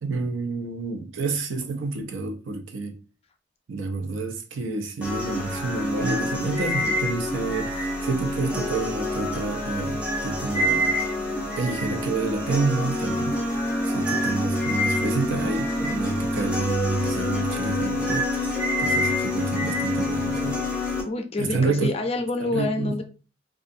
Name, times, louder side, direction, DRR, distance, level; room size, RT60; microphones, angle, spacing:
voice 1, 0.0-3.0 3.7-11.0 11.6-13.4 13.9-20.6 21.4-21.9 22.4-23.0, right 3 dB, 85° right, 0.5 m, -28 dB
sound 1, 5.0-21.0, left 1 dB, 5° right, 0.7 m, -27 dB
voice 2, 21.1-23.0, left 2 dB, 30° left, 0.4 m, -27 dB
2.5 x 2.3 x 2.5 m
head